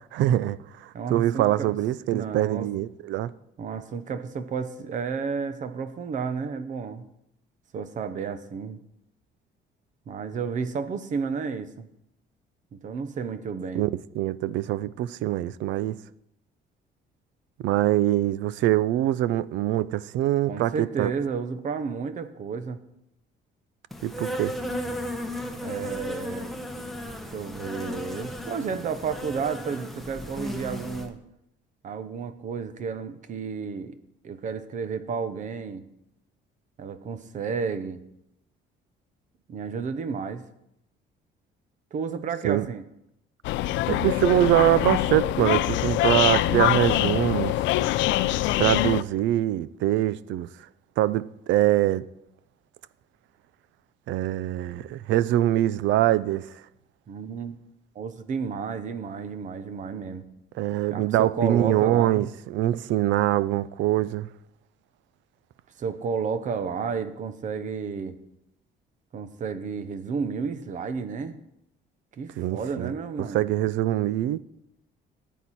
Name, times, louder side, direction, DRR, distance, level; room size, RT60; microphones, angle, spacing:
voice 1, 0.1-3.3 13.7-13.9 14.2-16.0 17.6-21.1 24.0-24.5 42.4-42.7 43.9-47.5 48.6-50.5 51.0-52.0 54.1-56.5 60.6-64.3 72.4-72.9 73.3-74.4, right 14 dB, 80° right, 0.5 m, -24 dB
voice 2, 0.9-1.7 2.1-2.7 3.6-7.1 7.7-8.8 10.1-11.9 12.7-13.9 20.5-22.8 25.6-26.6 27.3-31.2 31.8-34.0 34.2-35.8 36.8-38.0 39.5-40.4 41.9-42.8 57.1-57.6 57.9-60.2 60.9-62.3 65.8-68.1 69.1-71.4 72.2-73.4, right 5 dB, 40° right, 0.9 m, -32 dB
Insect, 23.9-31.1, equal, ahead, 0.9 m, -35 dB
sound 1, 43.4-49.0, left 15 dB, 85° left, 0.4 m, -24 dB
14.5 x 9.2 x 4.2 m
cardioid pair, 170°, 19 cm